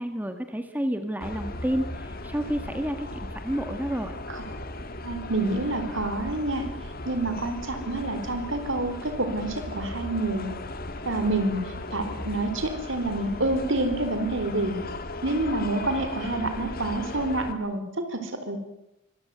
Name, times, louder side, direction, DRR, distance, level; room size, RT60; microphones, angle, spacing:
voice 1, 0.0-4.1, equal, 10° right, 7 dB, 1.4 m, -30 dB
sound 1, 1.2-17.5, left 2 dB, 45° left, 1.9 m, -37 dB
voice 2, 5.0-6.7 7.0-10.5 11.1-11.6 11.9-14.8 15.2-18.6, right 2 dB, 60° right, 9 dB, 4.0 m, -28 dB
25.0 x 16.0 x 9.4 m, 0.88 s
head